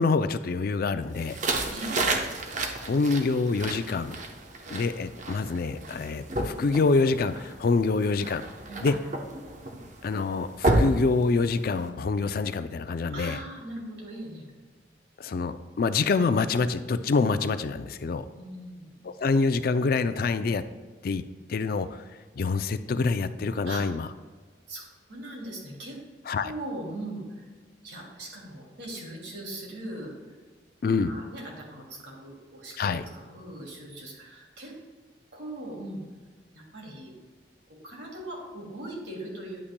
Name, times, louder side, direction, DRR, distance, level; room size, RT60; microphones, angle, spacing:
voice 1, 0.0-1.4 2.8-4.2 4.7-8.4 8.8-8.9 10.0-13.4 15.2-18.3 19.0-20.6 21.0-21.2 21.5-22.0 22.4-24.1 26.3-26.5 30.8-31.2 32.8-33.0, left 4 dB, 55° left, 12 dB, 0.4 m, -26 dB
sound 1, 1.2-11.9, right 2 dB, 45° right, 0.8 m, -31 dB
voice 2, 1.7-2.0 8.7-8.9 13.1-14.5 17.8-17.9 18.3-19.0 23.6-23.8 24.7-26.0 26.4-27.5 27.8-30.1 31.1-34.7 35.3-36.0 36.5-37.1 37.8-39.6, right 1 dB, 80° right, -2 dB, 2.5 m, -40 dB
9.7 x 8.6 x 2.2 m, 1.4 s
head